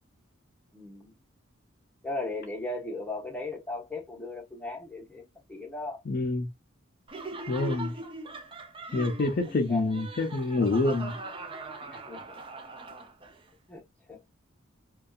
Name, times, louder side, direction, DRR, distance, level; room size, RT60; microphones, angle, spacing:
voice 1, 0.7-1.1 2.0-5.2 5.5-6.0 9.7-9.9 11.9-12.4 13.7-13.8 14.1-14.2, left 2 dB, 5° left, 0.8 m, -37 dB
voice 2, 6.1-6.5 7.5-7.9 8.9-11.2, left 2 dB, 45° left, 0.4 m, -27 dB
Laughter, 7.1-13.4, right 2 dB, 25° right, 0.5 m, -41 dB
2.6 x 2.2 x 2.3 m
head